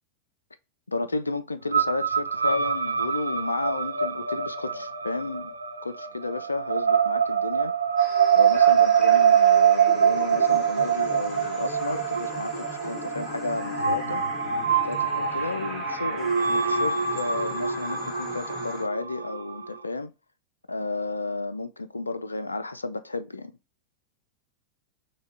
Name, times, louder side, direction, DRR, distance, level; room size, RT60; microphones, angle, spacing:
voice 1, 0.9-5.5 5.8-7.7 8.0-14.3 14.8-20.1 20.7-23.5, left 3 dB, 80° left, 0.4 m, -32 dB
sound 1, 1.7-19.9, right 7 dB, 75° right, 0.6 m, -24 dB
sound 2, 8.0-18.8, left 2 dB, 15° left, 2.2 m, -39 dB
6.3 x 2.2 x 3.4 m
figure-of-eight pair, 90°, 0 cm